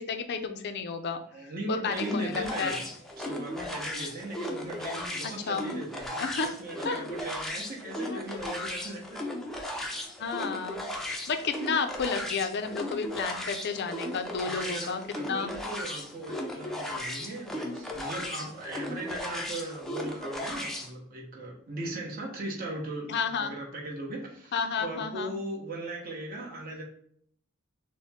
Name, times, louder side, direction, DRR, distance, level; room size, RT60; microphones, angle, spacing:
voice 1, 0.0-2.8 5.5-5.7 6.2-6.5 6.8-7.0 8.1-8.2 10.2-15.5 23.1-23.5 24.5-25.3, left 5 dB, 50° left, 7 dB, 0.5 m, -32 dB
voice 2, 1.3-2.9 3.2-9.2 14.4-26.8, right 1 dB, 40° right, -1 dB, 1.1 m, -38 dB
sound 1, 1.9-20.9, left 1 dB, ahead, 0.5 m, -36 dB
6.3 x 2.1 x 3.6 m, 0.65 s
head